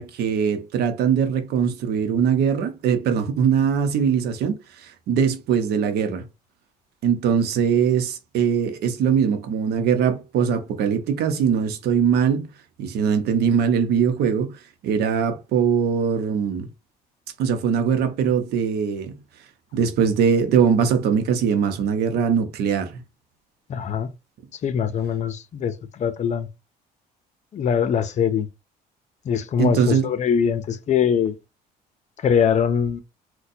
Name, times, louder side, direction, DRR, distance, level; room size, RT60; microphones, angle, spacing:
voice 1, 0.0-6.2 7.0-12.5 12.8-14.5 14.8-16.7 17.4-19.2 19.7-22.9 29.6-30.1, right 7 dB, 75° right, 0.8 m, -21 dB
voice 2, 23.7-24.1 24.6-26.5 27.5-28.5 29.2-31.4 32.2-33.0, left 7 dB, 45° left, 0.5 m, -22 dB
4.0 x 2.2 x 2.7 m
cardioid pair, 110°, 17 cm